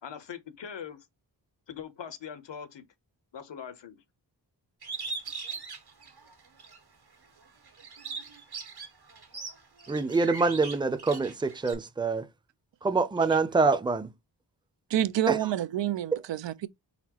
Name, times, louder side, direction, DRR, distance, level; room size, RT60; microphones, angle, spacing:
voice 1, 0.0-1.1 1.7-2.8 3.3-4.0, left 8 dB, 80° left, 0.9 m, -41 dB
Bird, 4.8-6.8 7.2-11.7, right 4 dB, 60° right, 1.6 m, -40 dB
voice 2, 9.9-12.3 12.8-14.1 15.3-15.5 16.1-16.2, right 4 dB, 10° right, 0.5 m, -25 dB
voice 3, 14.9-16.7, right 12 dB, 85° right, 0.5 m, -28 dB
4.2 x 4.1 x 2.9 m
cardioid pair, 55°, 43 cm